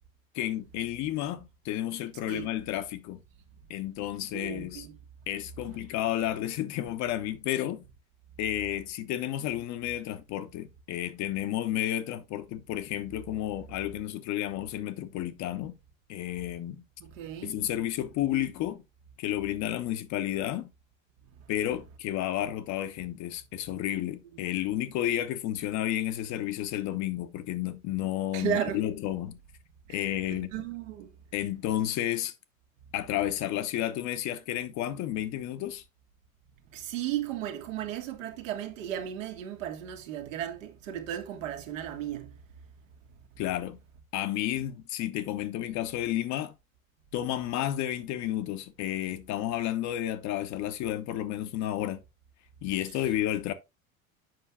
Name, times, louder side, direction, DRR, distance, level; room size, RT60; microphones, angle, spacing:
voice 1, 0.3-3.2 3.7-4.9 5.3-7.8 8.4-15.7 16.1-16.8 17.4-18.8 19.2-20.7 21.5-29.4 29.9-30.5 31.3-32.3 32.9-35.8 43.4-43.8 44.1-46.6 47.1-52.0 52.6-53.5, left 12 dB, 45° left, 1.0 m, -31 dB
voice 2, 4.3-4.9 17.0-17.6 28.3-28.9 29.9-31.1 36.7-42.3, right 10 dB, 65° right, 1.8 m, -35 dB
7.7 x 5.6 x 3.4 m
figure-of-eight pair, 80°, 41 cm